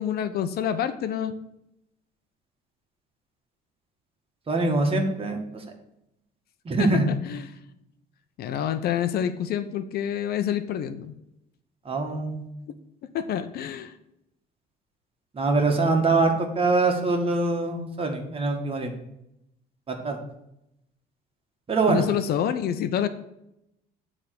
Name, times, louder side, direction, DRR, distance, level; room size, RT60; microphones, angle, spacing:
voice 1, 0.0-1.4 6.8-7.5 8.4-11.1 13.1-13.9 21.9-23.1, left 9 dB, 65° left, 11 dB, 0.8 m, -27 dB
voice 2, 4.5-5.6 6.6-7.1 11.8-12.5 15.3-18.9 19.9-20.2 21.7-22.0, right 3 dB, 35° right, 3 dB, 1.8 m, -24 dB
10.0 x 3.7 x 6.7 m, 0.83 s
cardioid pair, 110°, 17 cm